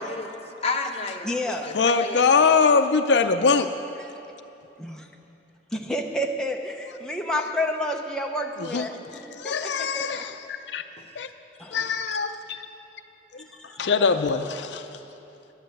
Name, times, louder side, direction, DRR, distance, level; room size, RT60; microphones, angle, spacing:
voice 1, 0.0-2.6 11.0-11.1 11.8-11.9, left 3 dB, 35° left, 3 dB, 0.9 m, -32 dB
voice 2, 1.2-1.8 4.0-4.1 4.8-5.1 5.7-10.2 11.6-11.8 13.6-13.9, left 1 dB, 5° left, 1 dB, 0.7 m, -30 dB
voice 3, 1.7-3.7 8.7-8.8 9.4-10.3 10.7-10.8 11.2-11.3 11.7-12.4 13.8-14.9, left 5 dB, 70° left, 8 dB, 0.5 m, -22 dB
11.5 x 11.0 x 7.8 m, 2.9 s
head